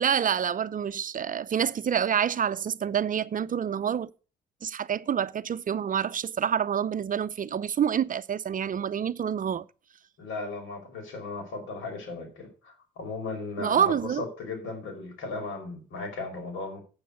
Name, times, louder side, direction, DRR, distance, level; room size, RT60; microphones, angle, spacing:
voice 1, 0.0-4.1 4.6-9.6 13.6-14.2, right 8 dB, 45° right, 0.6 m, -27 dB
voice 2, 10.2-16.8, left 3 dB, 85° left, 4.8 m, -36 dB
8.5 x 7.8 x 6.8 m
cardioid pair, 90°, 20 cm